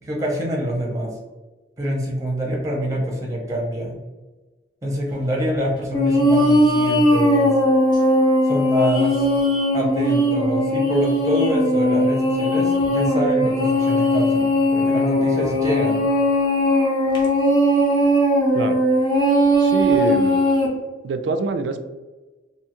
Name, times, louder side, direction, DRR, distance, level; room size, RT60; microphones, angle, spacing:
voice 1, 0.0-1.2 1.8-4.0 4.8-7.5 8.4-9.2 9.7-16.0, equal, 20° right, -1 dB, 0.6 m, -25 dB
sound 1, 5.9-20.7, equal, 25° left, 0.6 m, -19 dB
voice 2, 19.6-20.4 21.0-21.8, right 3 dB, 75° right, 8 dB, 0.3 m, -25 dB
2.7 x 2.3 x 2.8 m, 1.2 s
head